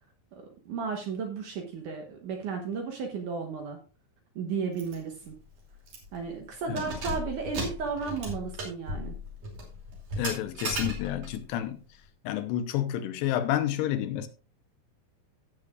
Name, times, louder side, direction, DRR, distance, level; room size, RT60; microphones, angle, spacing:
voice 1, 0.3-3.8 4.4-5.4 6.1-9.2, right 5 dB, 65° right, 2.1 m, -34 dB
Keys jangling, 4.8-5.0 5.3-5.4 5.9-6.2 6.6-11.4, equal, 45° right, 4.0 m, -36 dB
voice 2, 10.2-11.8 12.2-14.3, left 11 dB, 80° left, 2.9 m, -30 dB
16.5 x 7.4 x 2.4 m
omnidirectional pair, 4.9 m